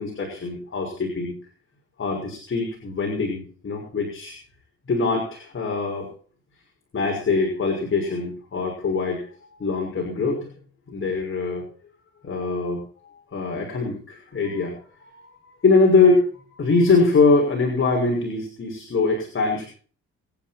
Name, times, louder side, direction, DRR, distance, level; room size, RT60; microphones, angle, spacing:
voice 1, 0.0-1.3 2.0-4.4 4.9-6.1 6.9-9.2 9.6-10.5 10.9-11.6 12.2-14.7 15.1-16.2 16.6-19.7, left 3 dB, 40° left, 0 dB, 6.1 m, -23 dB
25.0 x 10.0 x 4.5 m, 0.43 s
cardioid pair, 90°, 30 cm